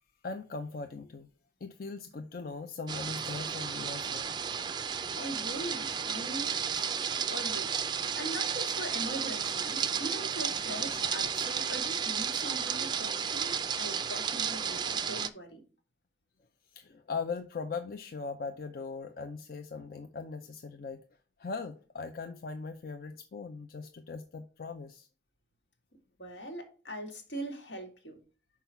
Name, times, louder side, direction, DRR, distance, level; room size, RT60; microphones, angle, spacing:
voice 1, 0.2-1.3 1.6-4.4 16.7-21.0 21.4-25.1, left 4 dB, 50° left, 0.4 m, -39 dB
sound 1, 2.9-15.3, right 7 dB, 25° right, 0.4 m, -33 dB
voice 2, 5.2-6.9 7.3-7.8 8.2-15.6 26.2-28.2, right 1 dB, 80° left, 2.1 m, -41 dB
5.7 x 4.7 x 5.7 m
head